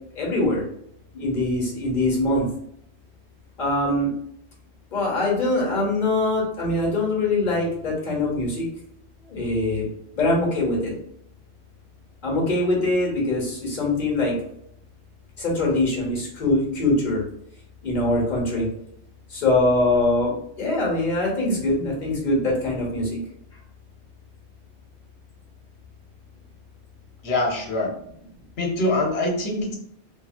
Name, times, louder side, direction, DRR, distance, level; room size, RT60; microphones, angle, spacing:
voice 1, 0.2-0.6 1.1-2.4 3.6-4.1 4.9-8.6 9.3-9.8 10.2-10.8 12.2-14.3 15.4-17.2 17.8-18.6 19.4-20.3 20.6-23.0, left 2 dB, 45° left, -3 dB, 1.1 m, -23 dB
voice 2, 27.2-27.9 28.6-29.7, left 2 dB, 70° left, -1 dB, 1.0 m, -24 dB
2.7 x 2.6 x 2.4 m, 0.71 s
omnidirectional pair, 1.1 m